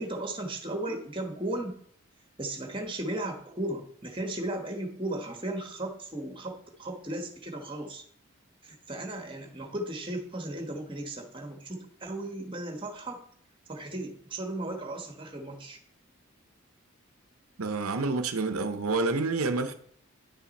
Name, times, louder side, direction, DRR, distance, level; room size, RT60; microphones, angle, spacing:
voice 1, 0.0-1.8 2.4-8.0 8.6-13.2 13.7-15.8, right 1 dB, 25° right, 1.3 m, -36 dB
voice 2, 17.6-19.7, right 3 dB, 85° right, 0.8 m, -28 dB
10.5 x 5.8 x 4.2 m
head